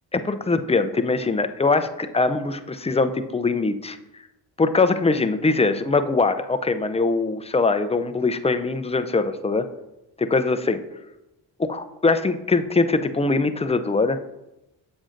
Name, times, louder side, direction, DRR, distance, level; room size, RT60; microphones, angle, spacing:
voice 1, 0.1-4.0 4.6-9.7 10.3-10.8 11.6-14.2, left 3 dB, 15° left, 9 dB, 0.5 m, -22 dB
7.3 x 7.1 x 2.6 m, 0.93 s
supercardioid pair, 50°, 47 cm